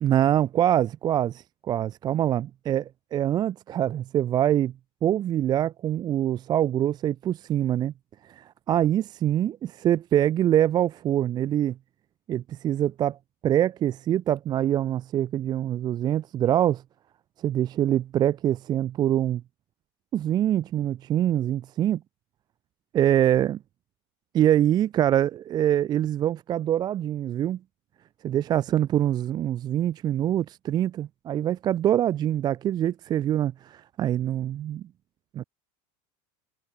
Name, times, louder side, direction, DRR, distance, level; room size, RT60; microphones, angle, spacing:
voice 1, 0.0-4.7 5.0-7.9 8.2-11.8 12.3-13.2 13.4-16.8 17.4-19.4 20.1-22.0 22.9-23.6 24.3-27.6 28.2-34.8 35.3-35.4, right 11 dB, 25° right, 0.4 m, -24 dB
supercardioid pair, 140°, 16 cm